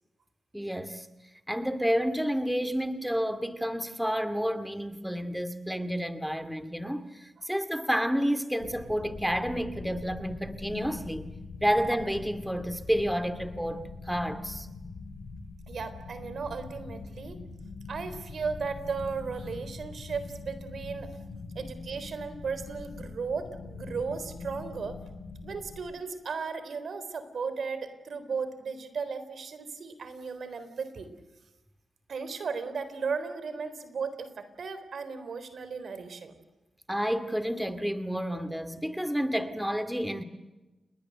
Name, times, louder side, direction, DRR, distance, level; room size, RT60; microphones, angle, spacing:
voice 1, 0.5-1.1 1.5-11.3 11.6-14.7 36.9-40.2, equal, ahead, 10 dB, 2.2 m, -30 dB
sound 1, 8.6-25.8, left 3 dB, 70° left, 7.9 m, -43 dB
voice 2, 15.7-17.4 17.9-21.1 21.6-25.0 25.4-31.1 32.1-36.3, right 5 dB, 70° right, 12 dB, 3.8 m, -35 dB
29.5 x 20.5 x 7.9 m, 1.1 s
cardioid pair, 55°, 0 cm